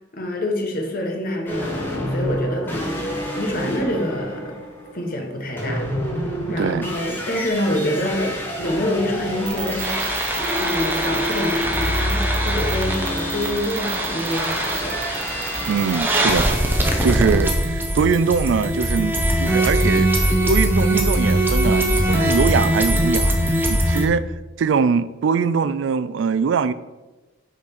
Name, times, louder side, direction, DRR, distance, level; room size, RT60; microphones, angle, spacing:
voice 1, 0.1-3.1 3.3-4.6 4.9-5.9 6.5-10.1 10.6-15.0, left 1 dB, 50° left, 1.1 m, -26 dB
sound 1, 1.5-16.0, left 1 dB, 10° left, 1.2 m, -29 dB
voice 2, 6.6-6.9 15.7-16.5 17.0-26.7, right 5 dB, 80° right, 0.3 m, -22 dB
sound 2, 9.5-16.6, right 8 dB, 60° right, 1.0 m, -33 dB
sound 3, 9.8-24.1, right 1 dB, 10° right, 0.8 m, -21 dB
6.0 x 4.0 x 5.8 m
head